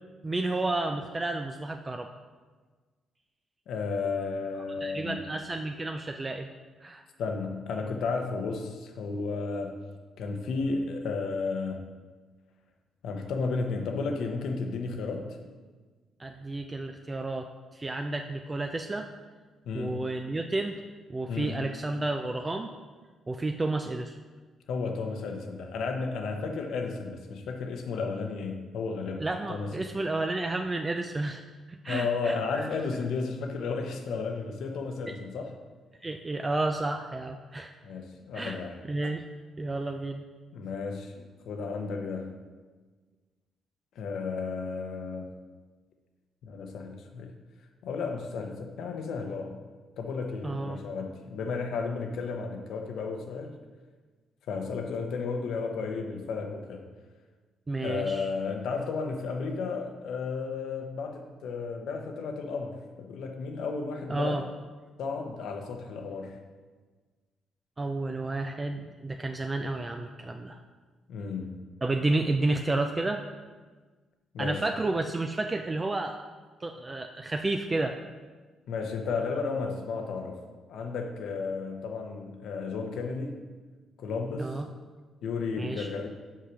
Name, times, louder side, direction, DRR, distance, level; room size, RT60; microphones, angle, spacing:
voice 1, 0.2-2.1 4.8-6.5 6.8-7.0 16.2-19.1 19.7-20.8 21.1-22.7 23.3-24.2 29.2-31.4 31.7-32.6 35.1-35.2 36.0-37.7 38.3-38.6 38.9-39.2 39.6-40.3 50.4-50.8 57.7-58.3 64.1-64.4 67.8-70.6 71.8-73.2 74.4-76.2 76.6-78.0 84.4-84.7 85.6-85.9, right 2 dB, 25° right, 5 dB, 0.4 m, -31 dB
voice 2, 3.7-5.2 7.2-9.8 10.2-11.9 13.0-15.4 19.7-20.0 21.3-21.6 24.7-29.8 31.9-35.6 37.8-38.7 40.5-42.3 44.0-45.3 46.4-47.3 47.8-49.6 50.0-53.5 54.5-56.9 57.8-64.4 65.0-66.4 71.1-71.6 74.3-74.6 78.7-80.4 80.7-83.4 84.0-84.6 85.2-86.1, left 4 dB, 75° left, 4 dB, 0.9 m, -33 dB
5.7 x 4.8 x 6.1 m, 1.4 s
cardioid pair, 90°, 0 cm